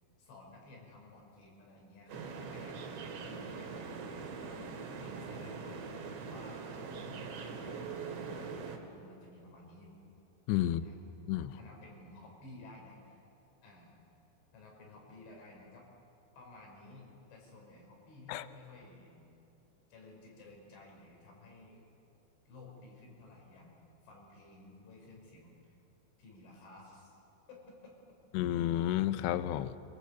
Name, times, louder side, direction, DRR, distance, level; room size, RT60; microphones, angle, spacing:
voice 1, 0.2-10.0 10.6-11.1 11.4-13.2 13.6-14.0 14.5-15.9 16.4-19.4 19.9-21.8 22.5-25.7 26.2-27.2 27.5-27.9, left 2 dB, 65° left, 0 dB, 7.6 m, -55 dB
sound 1, 2.1-8.8, right 5 dB, 65° right, 4.2 m, -42 dB
voice 2, 10.5-10.8 11.3-11.5 18.3-18.5 28.3-29.8, left 13 dB, 85° left, 13 dB, 2.4 m, -31 dB
27.0 x 24.0 x 8.3 m, 2.9 s
omnidirectional pair, 5.9 m